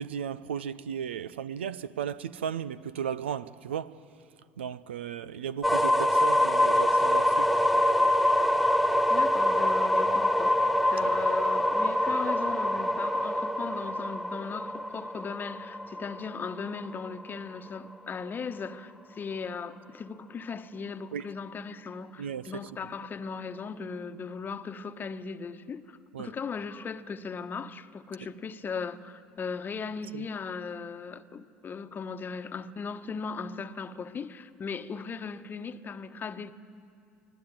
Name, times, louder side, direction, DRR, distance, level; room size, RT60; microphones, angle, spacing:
voice 1, 0.0-4.0 4.6-7.5 11.0-11.1 21.1-21.3 22.2-22.7 26.1-26.3 30.1-30.3, right 8 dB, 90° right, 0.5 m, -35 dB
sound 1, 5.6-17.4, left 1 dB, ahead, 0.7 m, -25 dB
voice 2, 9.1-10.6 10.9-36.5, left 5 dB, 35° left, 1.1 m, -38 dB
24.5 x 17.0 x 8.9 m
hypercardioid pair, 75°, 6 cm